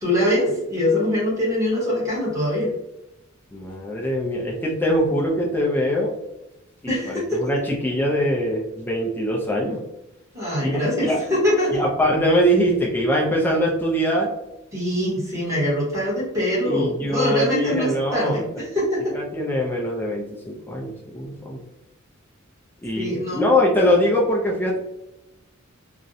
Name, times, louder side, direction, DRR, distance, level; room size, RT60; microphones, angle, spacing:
voice 1, 0.0-2.7 6.9-7.4 10.3-11.8 14.7-19.2 23.0-23.5, left 1 dB, 15° right, -7 dB, 0.9 m, -23 dB
voice 2, 3.5-6.1 6.8-9.8 10.6-11.2 11.7-14.3 16.6-18.6 19.1-21.6 22.8-24.8, equal, 10° left, -2 dB, 0.3 m, -22 dB
2.4 x 2.0 x 2.6 m, 0.91 s
head